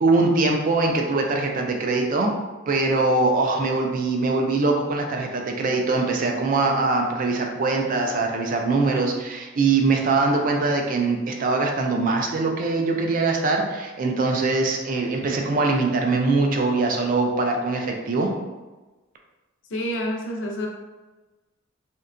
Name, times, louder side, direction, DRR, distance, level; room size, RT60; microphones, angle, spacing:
voice 1, 0.0-2.3 2.7-18.3, right 3 dB, 40° right, 2 dB, 0.3 m, -22 dB
voice 2, 19.7-20.7, equal, 60° left, 0 dB, 0.5 m, -28 dB
2.7 x 2.2 x 2.5 m, 1.2 s
head